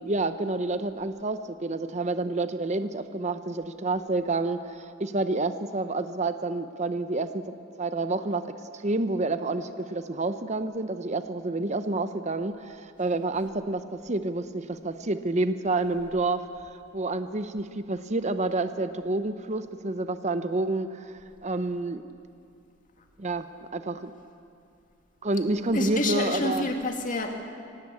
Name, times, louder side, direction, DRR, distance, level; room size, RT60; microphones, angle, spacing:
voice 1, 0.0-22.0 23.2-23.5 23.7-24.1 25.2-26.7, right 2 dB, 35° right, 10 dB, 0.7 m, -29 dB
voice 2, 25.7-27.4, left 2 dB, 40° left, 3 dB, 2.3 m, -28 dB
25.0 x 17.0 x 8.5 m, 2.5 s
head